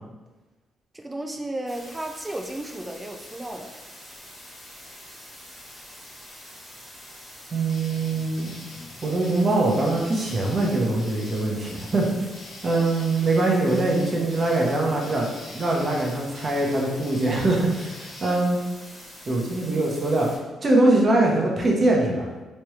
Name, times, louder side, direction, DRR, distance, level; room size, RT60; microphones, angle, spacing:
voice 1, 0.9-3.7 12.9-13.3, right 1 dB, 15° right, 3 dB, 0.3 m, -34 dB
sound 1, 1.7-20.4, equal, 15° left, 1.4 m, -45 dB
voice 2, 7.5-8.5 9.0-12.1 12.6-18.6 19.3-20.3 20.6-22.3, right 2 dB, 40° right, -1 dB, 0.8 m, -22 dB
sound 2, 7.7-18.3, left 2 dB, 55° left, 1.0 m, -45 dB
3.4 x 3.2 x 3.1 m, 1.2 s
cardioid pair, 90°, 0 cm